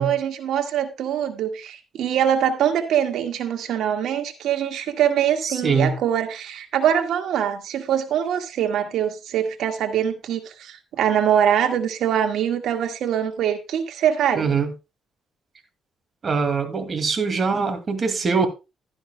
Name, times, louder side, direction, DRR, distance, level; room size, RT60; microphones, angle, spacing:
voice 1, 0.0-14.6, right 9 dB, 80° right, 1.8 m, -23 dB
voice 2, 5.4-6.0 14.4-14.7 16.2-18.5, right 5 dB, 40° right, 2.3 m, -23 dB
12.5 x 10.5 x 2.3 m
cardioid pair, 90°, 0 cm